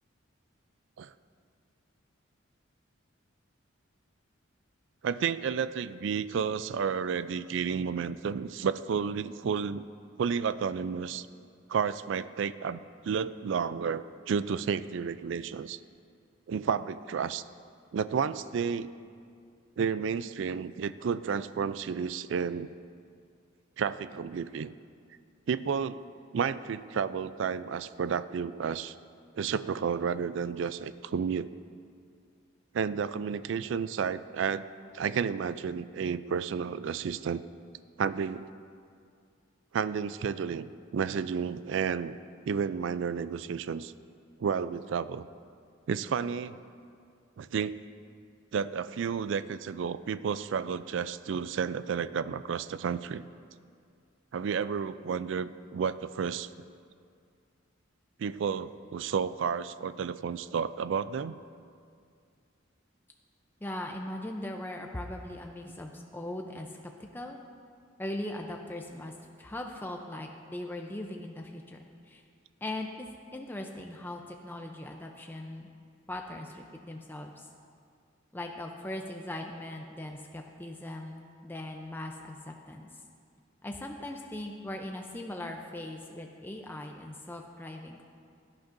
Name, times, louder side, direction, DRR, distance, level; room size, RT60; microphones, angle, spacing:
voice 1, 5.0-9.8 10.2-11.3 11.7-15.8 16.5-17.4 17.9-18.9 19.8-22.7 23.8-24.7 25.5-26.1 26.3-28.9 29.3-31.5 32.7-34.7 34.9-37.4 38.0-38.4 39.7-42.2 42.5-43.9 44.4-45.3 45.9-46.6 47.4-47.7 48.5-53.2 54.3-56.5 58.2-61.4, right 6 dB, 60° right, 14 dB, 0.3 m, -31 dB
voice 2, 63.6-66.8 67.1-67.4 68.0-69.1 69.4-72.2 72.6-75.7 76.1-77.5 78.3-82.9 83.6-88.0, left 1 dB, 10° left, 2 dB, 0.5 m, -39 dB
16.5 x 10.5 x 2.6 m, 2.3 s
head